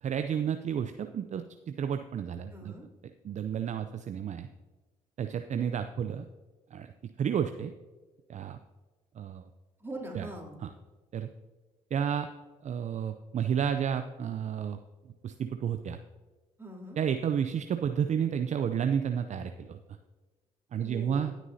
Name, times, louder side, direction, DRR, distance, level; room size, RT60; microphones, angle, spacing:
voice 1, 0.0-2.7 3.2-4.5 5.2-6.2 6.7-6.9 7.2-7.7 8.3-8.6 9.2-9.5 10.1-10.3 10.6-10.7 11.1-11.3 11.9-12.3 12.6-14.8 15.2-16.0 17.0-19.8 20.7-21.3, right 8 dB, 45° right, 8 dB, 0.5 m, -31 dB
voice 2, 2.5-2.9 9.8-10.6 16.6-17.0 20.8-21.3, right 1 dB, 15° right, -2 dB, 3.1 m, -42 dB
17.5 x 6.1 x 2.7 m, 1.2 s
hypercardioid pair, 60°, 17 cm